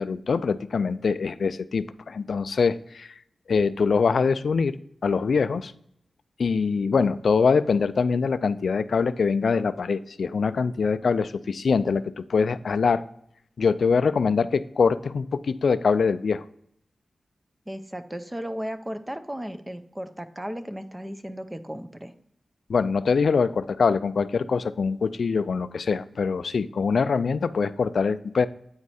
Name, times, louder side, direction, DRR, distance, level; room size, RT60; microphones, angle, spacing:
voice 1, 0.0-3.1 3.5-4.8 5.0-5.7 6.4-13.0 13.6-16.4 22.7-28.5, left 5 dB, 75° left, 14 dB, 0.3 m, -23 dB
voice 2, 17.7-22.1, equal, 15° right, 10 dB, 0.5 m, -35 dB
8.7 x 4.7 x 4.1 m, 0.72 s
wide cardioid pair, 95°, 0 cm